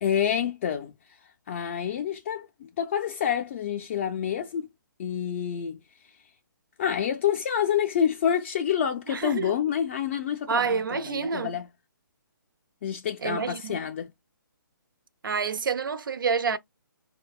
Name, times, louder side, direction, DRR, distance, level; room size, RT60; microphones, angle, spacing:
voice 1, 0.0-4.7 5.0-6.2 6.8-11.7 12.8-14.1, left 9 dB, 35° left, 0.3 m, -28 dB
voice 2, 9.1-9.5 10.5-11.6 13.2-13.8 15.2-16.6, right 5 dB, 75° right, 0.4 m, -28 dB
4.4 x 2.1 x 2.3 m
figure-of-eight pair, 145°, 11 cm